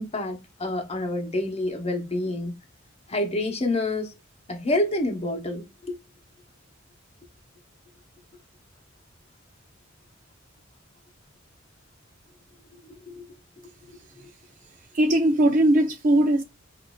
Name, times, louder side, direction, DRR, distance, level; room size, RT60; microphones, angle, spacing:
voice 1, 0.0-2.5 3.1-4.1 4.5-6.0 13.1-13.2, left 1 dB, 30° left, 0.8 m, -28 dB
voice 2, 14.9-16.4, right 1 dB, 40° right, 0.5 m, -19 dB
6.2 x 2.6 x 2.3 m
head